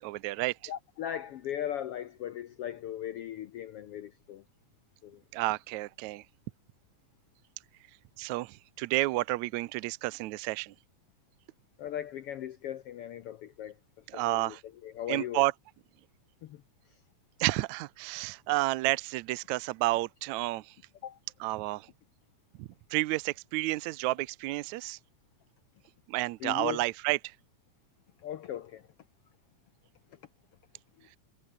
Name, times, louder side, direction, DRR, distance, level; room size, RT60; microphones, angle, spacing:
voice 1, 0.0-0.7 5.3-6.3 8.2-10.8 14.1-14.6 15.1-15.5 17.4-20.8 21.4-21.9 22.6-25.0 26.1-27.4 31.1-31.2, right 20 dB, 80° right, 1.8 m, -31 dB
voice 2, 0.7-4.4 5.0-5.2 11.8-13.7 14.1-14.5 14.8-15.4 16.4-16.6 21.0-21.2 26.4-26.8 28.2-28.8, left 11 dB, 75° left, 1.4 m, -38 dB
omnidirectional pair, 3.6 m